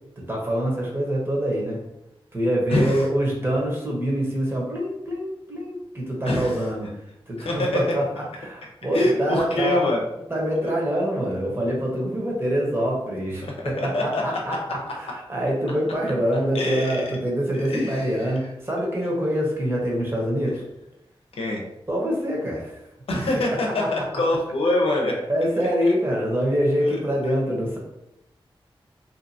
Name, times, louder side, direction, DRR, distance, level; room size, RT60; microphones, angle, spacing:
voice 1, 0.2-1.8 2.3-6.9 7.3-9.8 10.3-20.6 21.9-22.8 25.3-27.8, equal, 25° right, -3 dB, 0.9 m, -25 dB
voice 2, 2.7-3.1 6.3-6.6 7.4-7.8 8.9-10.0 10.6-10.7 13.4-14.7 16.5-17.0 17.7-18.3 21.4-21.6 23.1-25.1 26.8-26.9, left 1 dB, 90° left, -1 dB, 0.6 m, -24 dB
2.7 x 2.5 x 2.6 m, 0.87 s
wide cardioid pair, 65°, 10 cm